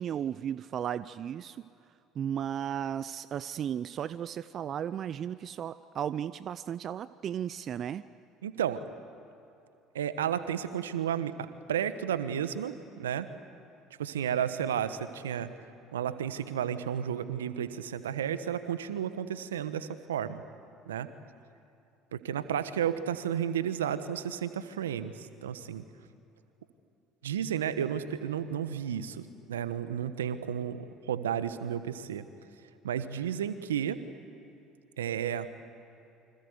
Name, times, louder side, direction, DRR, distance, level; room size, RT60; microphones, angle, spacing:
voice 1, 0.0-1.7 2.1-8.0, right 9 dB, 45° right, 16 dB, 0.6 m, -35 dB
voice 2, 8.4-8.8 9.9-13.3 14.0-15.5 15.9-20.4 20.9-21.1 22.1-25.8 27.2-32.2 32.8-34.0 35.0-35.5, right 9 dB, 85° right, 12 dB, 1.2 m, -32 dB
28.5 x 25.5 x 8.1 m, 2.7 s
hypercardioid pair, 65°, 0 cm